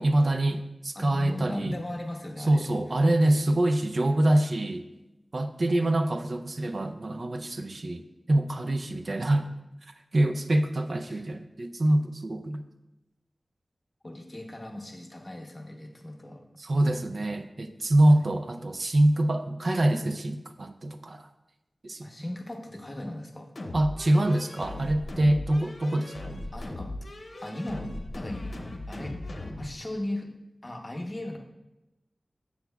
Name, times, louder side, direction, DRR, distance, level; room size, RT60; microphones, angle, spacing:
voice 1, 0.0-1.7 2.5-4.9 5.3-9.5 10.1-12.6 16.6-21.3 21.8-22.1 23.7-26.3, right 1 dB, 60° right, 8 dB, 0.4 m, -25 dB
voice 2, 0.9-2.7 5.7-5.9 11.1-11.3 14.0-16.5 22.0-23.5 26.5-26.9 27.4-28.5 28.9-29.2 29.6-30.3 30.6-31.4, left 1 dB, 30° left, 1 dB, 0.8 m, -37 dB
sound 1, 23.6-29.7, left 1 dB, 70° left, 0.7 m, -38 dB
7.7 x 7.0 x 2.3 m, 0.96 s
wide cardioid pair, 80°, 0 cm